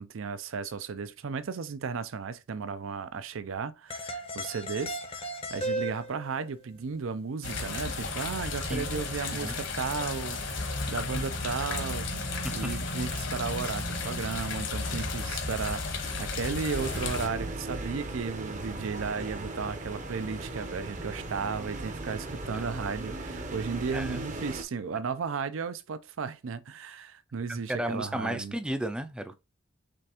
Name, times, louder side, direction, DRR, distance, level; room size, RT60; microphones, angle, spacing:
voice 1, 0.0-28.5, right 5 dB, 70° right, 0.5 m, -35 dB
sound 1, 3.9-6.4, right 1 dB, 25° left, 0.7 m, -35 dB
sound 2, 7.4-17.3, left 3 dB, 60° left, 1.2 m, -33 dB
voice 2, 8.7-9.0 9.3-9.6 12.4-12.8 22.5-22.7 23.9-24.2 27.5-29.4, right 1 dB, 5° right, 0.4 m, -34 dB
sound 3, 16.7-24.6, right 2 dB, 35° right, 0.7 m, -37 dB
5.2 x 3.4 x 2.9 m
head